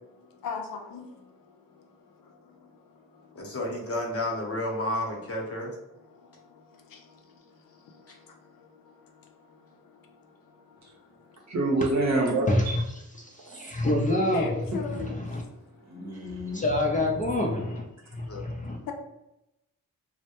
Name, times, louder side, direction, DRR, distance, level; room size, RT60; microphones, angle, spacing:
voice 1, 0.4-1.0 14.3-15.1, left 5 dB, 75° left, 3 dB, 0.5 m, -34 dB
voice 2, 3.3-5.8 8.1-8.2 18.3-18.5, left 1 dB, 45° left, 0 dB, 0.8 m, -31 dB
voice 3, 11.5-12.8 13.5-13.6 15.9-16.6, right 2 dB, 55° right, 0 dB, 0.8 m, -27 dB
voice 4, 12.5-14.5 15.0-15.4 16.5-17.8 18.1-18.8, left 1 dB, 25° left, 0 dB, 0.4 m, -27 dB
2.1 x 2.0 x 2.8 m, 0.90 s
cardioid pair, 45°, 34 cm